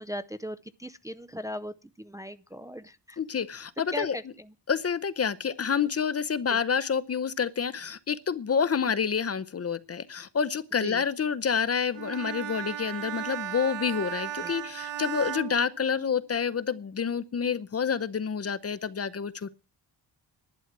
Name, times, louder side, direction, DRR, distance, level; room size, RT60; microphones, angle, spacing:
voice 1, 0.0-3.2 3.9-4.5 6.5-6.6 10.8-11.0 14.4-14.5, equal, 10° right, 0.5 m, -38 dB
voice 2, 3.2-4.2 4.7-19.5, left 6 dB, 35° left, 0.7 m, -28 dB
Bowed string instrument, 11.9-16.4, right 11 dB, 85° right, 1.4 m, -36 dB
11.5 x 11.0 x 6.0 m
wide cardioid pair, 130°, 42 cm